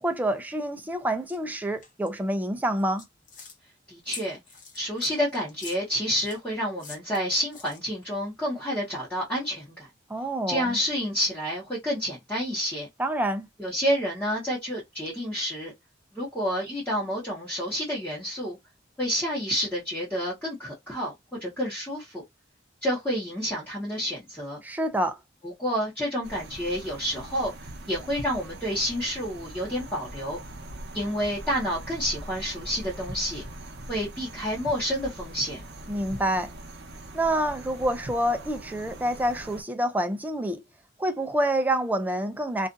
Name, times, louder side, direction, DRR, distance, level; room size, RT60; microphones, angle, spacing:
voice 1, 0.0-3.0 10.1-10.8 13.0-13.5 24.6-25.2 35.9-36.5 37.1-40.6 41.0-42.7, right 1 dB, 10° right, 0.3 m, -27 dB
sound 1, 1.3-1.4 1.8-2.1 2.8-3.6 4.1-6.4 6.8-8.0, left 5 dB, 45° left, 0.8 m, -44 dB
voice 2, 3.9-4.4 4.7-9.9 10.5-12.9 13.6-15.7 16.1-18.6 19.0-22.2 22.8-24.6 25.4-27.5 27.9-30.4 30.9-33.4 33.9-35.6, equal, 10° left, 1.0 m, -29 dB
sound 2, 26.2-39.6, right 1 dB, 60° right, 0.7 m, -41 dB
2.4 x 2.4 x 2.5 m
head